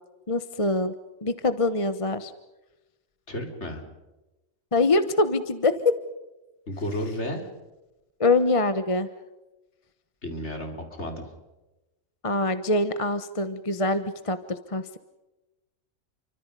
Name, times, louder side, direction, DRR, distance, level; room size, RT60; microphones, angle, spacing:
voice 1, 0.3-0.9 1.2-2.3 4.7-6.0 8.2-9.1 12.2-15.0, left 2 dB, 25° left, 11 dB, 1.1 m, -24 dB
voice 2, 3.3-3.8 6.7-7.5 10.2-11.3, left 1 dB, 55° left, 4 dB, 4.6 m, -32 dB
30.0 x 25.0 x 5.4 m, 1.0 s
omnidirectional pair, 1.4 m